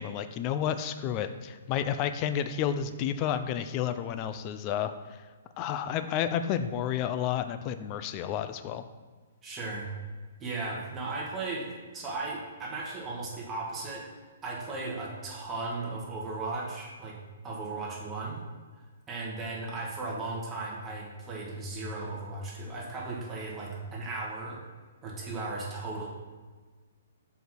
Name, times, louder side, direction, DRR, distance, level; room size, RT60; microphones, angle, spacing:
voice 1, 0.0-5.2 5.6-8.8, left 9 dB, 30° left, 10 dB, 0.5 m, -31 dB
voice 2, 9.4-9.9 10.4-14.1 14.4-17.2 17.4-18.4 19.1-24.6 25.0-26.1, right 3 dB, 15° right, -3 dB, 1.6 m, -36 dB
5.3 x 4.9 x 6.0 m, 1.4 s
hypercardioid pair, 155°, 0 cm